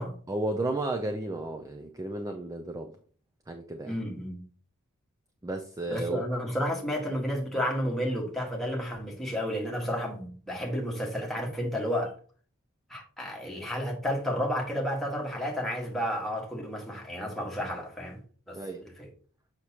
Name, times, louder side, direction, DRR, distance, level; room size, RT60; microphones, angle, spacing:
voice 1, 0.3-2.9 3.5-3.9 5.4-6.2 18.5-18.8, right 2 dB, 15° right, 0.4 m, -33 dB
voice 2, 3.8-4.4 5.9-12.2 12.9-18.2 18.5-19.1, equal, ahead, 1.5 m, -31 dB
6.5 x 5.9 x 2.8 m
head